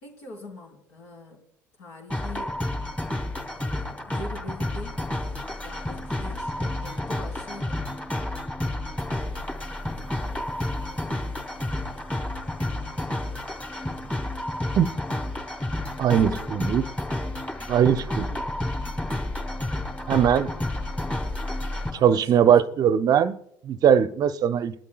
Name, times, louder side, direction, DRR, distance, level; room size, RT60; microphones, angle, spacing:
voice 1, 0.0-1.4 1.8-2.6 3.4-7.8 16.1-16.6 20.3-20.6 21.9-22.6, left 1 dB, 65° left, 4.5 m, -43 dB
sound 1, 2.1-21.9, left 1 dB, 15° left, 2.9 m, -30 dB
voice 2, 16.0-16.9 17.7-18.4 20.1-20.5 22.0-24.7, right 8 dB, 45° right, 0.7 m, -20 dB
21.0 x 12.0 x 2.4 m
figure-of-eight pair, 60°, 9 cm